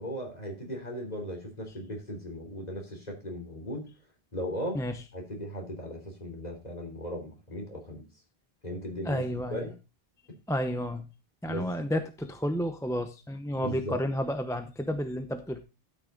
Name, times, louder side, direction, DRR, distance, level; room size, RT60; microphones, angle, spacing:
voice 1, 0.0-3.9 4.3-4.8 5.1-8.0 8.6-9.7 11.5-11.6 13.6-14.0, equal, 40° left, 1 dB, 3.5 m, -37 dB
voice 2, 9.0-9.7 10.5-11.1 11.4-15.6, equal, 5° left, 7 dB, 0.7 m, -31 dB
12.5 x 6.3 x 3.8 m, 0.29 s
omnidirectional pair, 1.0 m